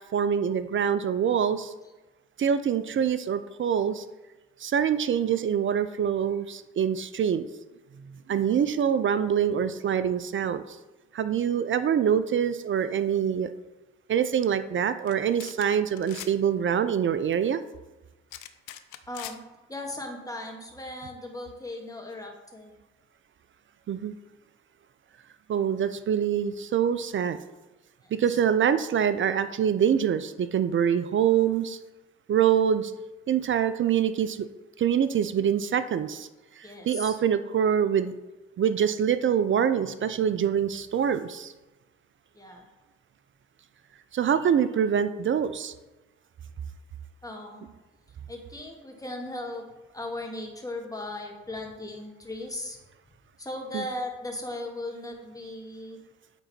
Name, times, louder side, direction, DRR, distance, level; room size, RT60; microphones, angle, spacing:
voice 1, 0.1-1.7 2.4-4.0 4.6-7.5 8.3-10.6 11.1-13.5 14.1-17.6 23.9-24.1 25.5-27.4 28.1-31.8 32.3-32.9 33.3-34.5 34.8-36.3 36.6-38.2 38.6-41.5 44.1-45.7 53.7-53.8, right 8 dB, 40° right, 12 dB, 0.5 m, -25 dB
sound 1, 15.1-15.2 15.4-15.7 16.0-16.3 18.3-19.4, left 13 dB, 75° left, 0.6 m, -41 dB
voice 2, 19.1-22.8 28.0-28.4 36.6-37.2 42.3-42.6 47.2-47.7 48.3-49.6 49.9-52.8 53.4-56.0, left 1 dB, 10° left, 1 dB, 1.9 m, -37 dB
9.1 x 3.8 x 4.3 m, 1.1 s
hypercardioid pair, 45°, 30 cm